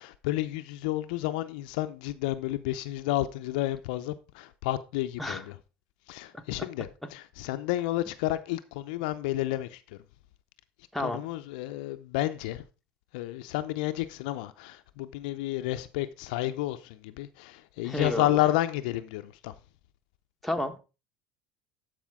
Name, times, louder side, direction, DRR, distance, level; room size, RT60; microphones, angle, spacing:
voice 1, 0.0-5.5 6.1-9.8 11.0-12.6 13.1-19.5, left 15 dB, 70° left, 0.6 m, -31 dB
voice 2, 17.8-18.5 20.4-20.8, left 1 dB, ahead, 1.4 m, -31 dB
13.0 x 4.9 x 3.6 m
hypercardioid pair, 75°, 5 cm